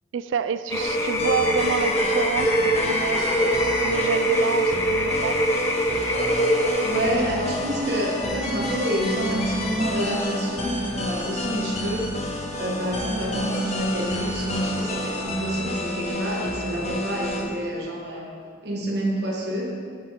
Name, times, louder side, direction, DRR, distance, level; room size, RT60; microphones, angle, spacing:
voice 1, 0.1-2.5 2.8-3.4 3.8-5.4, right 6 dB, 80° right, 12 dB, 0.3 m, -28 dB
sound 1, 0.7-17.4, left 1 dB, 35° left, 0.8 m, -30 dB
sound 2, 0.7-7.1, equal, 15° left, 0.5 m, -23 dB
voice 2, 6.8-12.2 12.6-18.3 18.6-19.7, right 1 dB, 60° right, -2 dB, 1.4 m, -27 dB
9.6 x 6.3 x 3.6 m, 2.2 s
head